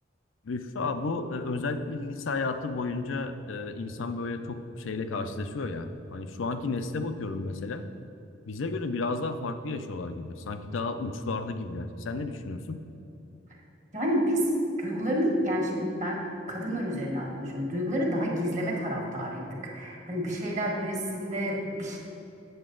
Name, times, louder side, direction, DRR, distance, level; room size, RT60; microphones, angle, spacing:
voice 1, 0.4-7.8 8.5-12.8, left 3 dB, 90° left, 8 dB, 0.5 m, -32 dB
voice 2, 13.9-14.5 14.8-22.0, equal, 40° right, -1 dB, 1.4 m, -29 dB
8.0 x 7.2 x 3.8 m, 2.9 s
head